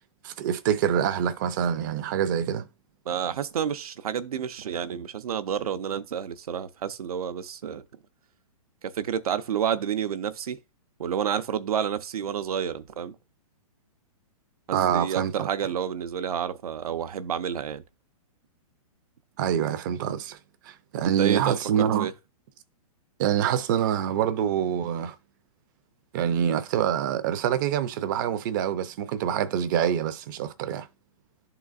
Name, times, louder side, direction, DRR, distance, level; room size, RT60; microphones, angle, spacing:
voice 1, 0.2-2.7 14.7-15.5 19.4-20.4 20.7-22.1 23.2-25.2 26.1-30.9, right 9 dB, 35° right, 0.4 m, -26 dB
voice 2, 3.1-7.8 8.8-10.6 11.0-13.2 14.7-17.8 21.0-22.1, right 8 dB, 85° right, 0.7 m, -29 dB
11.0 x 3.8 x 2.4 m
hypercardioid pair, 155°, 18 cm